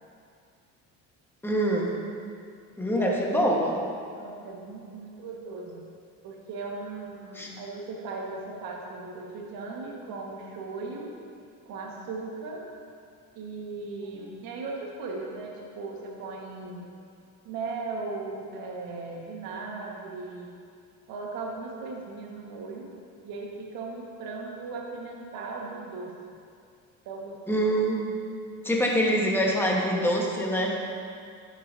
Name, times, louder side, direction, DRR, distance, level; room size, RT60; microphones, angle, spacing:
voice 1, 1.4-1.9 2.8-3.8 7.3-7.5 27.5-28.1 28.6-30.8, equal, 5° left, -2 dB, 1.3 m, -25 dB
voice 2, 4.1-5.8 6.2-11.1 11.6-12.6 13.3-16.9 17.4-20.6 21.1-22.9 23.2-26.4 27.0-27.6, right 3 dB, 75° right, -1 dB, 1.6 m, -37 dB
11.0 x 7.1 x 2.7 m, 2.3 s
cardioid pair, 110°, 35 cm